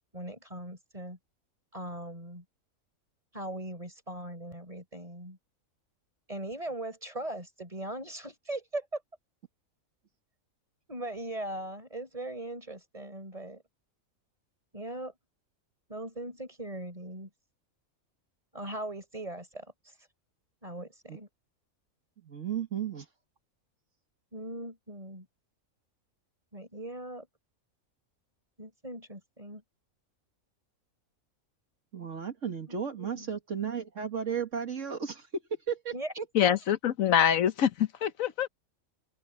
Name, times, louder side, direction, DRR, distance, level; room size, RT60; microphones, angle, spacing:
voice 1, 0.1-1.2 1.7-2.4 3.3-5.4 6.3-9.0 10.9-13.6 14.7-15.1 15.9-17.3 18.5-19.7 20.6-21.3 24.3-25.3 26.5-27.3 28.6-29.6 32.7-33.4 35.9-36.1, right 1 dB, 25° right, 4.6 m, -39 dB
voice 2, 22.2-23.1 31.9-35.3 35.7-36.2, right 7 dB, 65° right, 2.0 m, -34 dB
voice 3, 36.3-38.5, left 9 dB, 75° left, 1.3 m, -25 dB
omnidirectional pair, 1.4 m